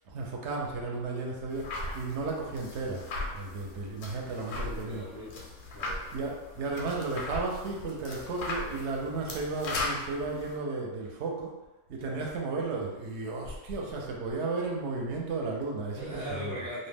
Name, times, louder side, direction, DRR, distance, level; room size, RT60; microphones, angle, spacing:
voice 1, 0.1-5.0 6.1-11.5 11.9-16.6, right 3 dB, 70° right, -1 dB, 0.9 m, -34 dB
sound 1, 1.5-10.6, left 2 dB, 85° left, 0.9 m, -38 dB
voice 2, 4.4-6.0 12.0-12.2 15.9-16.9, equal, 25° left, -9 dB, 0.4 m, -40 dB
2.4 x 2.1 x 3.3 m, 1.1 s
omnidirectional pair, 1.3 m